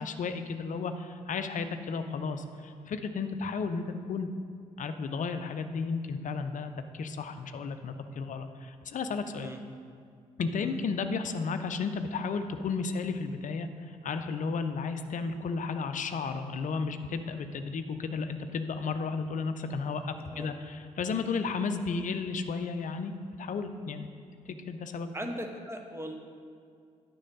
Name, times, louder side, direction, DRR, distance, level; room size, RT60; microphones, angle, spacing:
voice 1, 0.0-4.3 4.8-9.5 10.4-23.1 23.4-24.1 24.5-25.1, left 4 dB, 45° left, 9 dB, 0.6 m, -33 dB
voice 2, 9.3-9.6 10.6-10.8 20.2-20.5 25.1-26.1, equal, 15° right, 4 dB, 1.1 m, -39 dB
9.7 x 6.2 x 3.9 m, 2.3 s
figure-of-eight pair, 40°, 18 cm